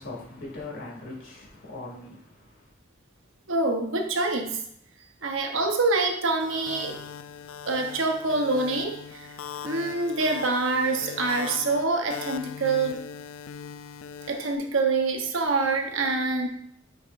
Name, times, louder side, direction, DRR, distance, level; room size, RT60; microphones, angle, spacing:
voice 1, 0.0-2.7, left 2 dB, 65° left, 2.4 m, -40 dB
voice 2, 3.5-4.6 5.2-7.0 7.6-9.3 9.6-13.0 14.3-16.5, right 3 dB, 70° right, 1.0 m, -26 dB
sound 1, 6.4-14.6, left 7 dB, 85° left, 0.4 m, -40 dB
8.9 x 5.1 x 2.6 m
head